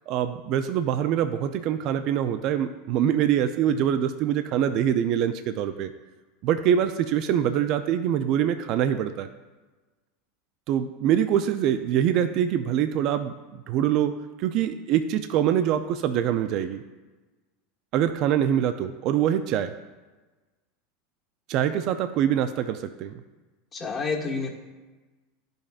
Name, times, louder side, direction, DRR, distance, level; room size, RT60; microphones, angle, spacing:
voice 1, 0.1-5.9 6.4-9.3 10.7-13.3 13.7-14.1 14.4-16.8 17.9-19.7 21.5-23.2, right 10 dB, 55° right, 9 dB, 0.4 m, -24 dB
voice 2, 23.7-24.5, left 4 dB, 30° left, -2 dB, 1.4 m, -29 dB
11.5 x 5.2 x 2.4 m, 1.2 s
hypercardioid pair, 100°, 0 cm